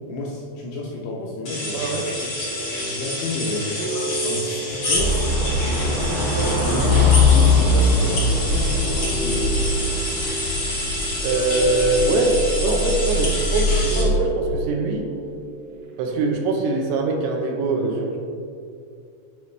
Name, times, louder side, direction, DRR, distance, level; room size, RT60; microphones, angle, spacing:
voice 1, 0.1-1.9 2.2-2.3 2.8-3.7 4.2-6.4 6.6-9.6, left 2 dB, 80° left, -3 dB, 2.5 m, -30 dB
sound 1, 1.4-14.0, left 1 dB, 60° left, 1.3 m, -28 dB
sound 2, 2.4-16.2, right 1 dB, 65° right, 3.1 m, -32 dB
sound 3, 4.9-14.3, left 2 dB, 50° right, 1.9 m, -21 dB
voice 2, 11.2-15.1 16.0-18.2, right 3 dB, 80° right, 2 dB, 3.1 m, -23 dB
9.3 x 5.4 x 3.2 m, 2.4 s
omnidirectional pair, 5.5 m